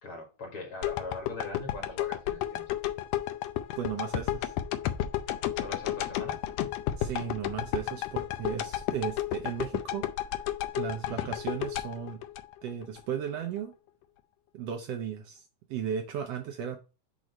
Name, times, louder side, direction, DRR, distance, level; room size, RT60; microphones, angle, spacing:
voice 1, 0.0-2.7 5.6-6.4 11.1-11.3, left 2 dB, 50° left, 2.3 m, -41 dB
sound 1, 0.8-13.0 13.4-13.5, left 12 dB, 80° left, 1.5 m, -32 dB
voice 2, 3.8-4.5 7.0-10.3 10.7-12.2 12.6-13.7 14.5-15.4 15.7-16.8, right 8 dB, 75° right, 1.6 m, -35 dB
6.2 x 3.0 x 5.1 m
omnidirectional pair, 3.3 m